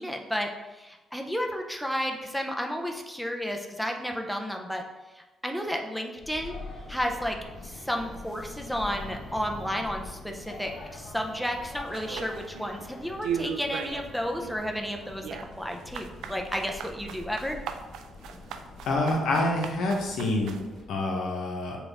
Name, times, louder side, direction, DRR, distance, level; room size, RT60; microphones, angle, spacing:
voice 1, 0.0-4.8 5.1-6.6 6.9-7.4 7.6-15.2 15.6-17.6, equal, ahead, 2 dB, 0.5 m, -32 dB
sound 1, 6.2-20.9, left 3 dB, 50° left, 0.9 m, -44 dB
sound 2, 11.9-12.9 13.2-14.1 14.4-20.7, right 7 dB, 85° right, 0.3 m, -37 dB
voice 2, 18.8-20.6 20.9-21.8, left 2 dB, 80° left, 0 dB, 1.0 m, -27 dB
6.0 x 2.5 x 3.4 m, 1.1 s
cardioid pair, 90°, 0 cm